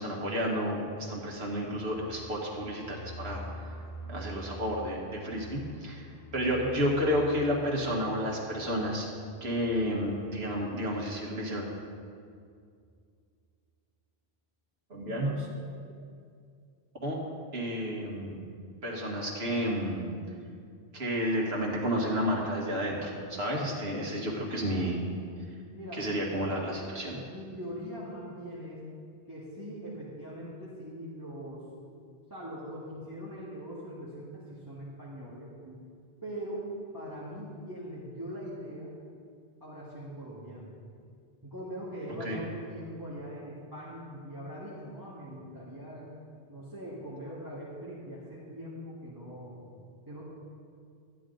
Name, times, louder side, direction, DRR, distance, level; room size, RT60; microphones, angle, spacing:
voice 1, 0.0-3.8 4.1-6.0 6.3-9.1 9.4-11.7 14.9-15.5 17.0-17.2 17.5-18.4 18.8-20.1 20.9-25.0 25.9-27.2 42.2-42.4, equal, 70° right, -3 dB, 2.1 m, -31 dB
sound 1, 1.0-10.6 10.9-11.0 11.2-11.7, right 1 dB, 65° left, 2.5 m, -47 dB
voice 2, 25.7-26.2 27.3-28.9 29.3-31.6 32.3-35.8 36.2-36.6 36.9-38.9 39.6-40.7 41.4-46.1 46.5-49.6 50.0-50.2, equal, 20° right, -9 dB, 1.8 m, -41 dB
13.0 x 10.5 x 3.9 m, 2.3 s
omnidirectional pair, 1.1 m